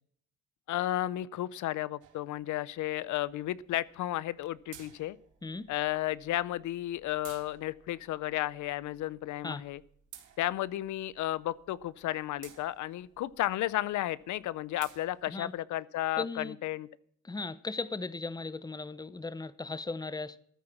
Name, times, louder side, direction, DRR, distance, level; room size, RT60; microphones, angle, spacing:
voice 1, 0.7-5.2 5.7-9.8 10.4-16.9, left 14 dB, 75° left, 0.6 m, -33 dB
sound 1, 2.0-15.6, right 10 dB, 80° right, 2.2 m, -57 dB
voice 2, 5.4-5.7 9.4-9.6 15.3-15.5 16.2-16.5 17.2-20.4, left 3 dB, 15° left, 0.8 m, -37 dB
14.0 x 9.6 x 5.9 m
cardioid pair, 90°, 30 cm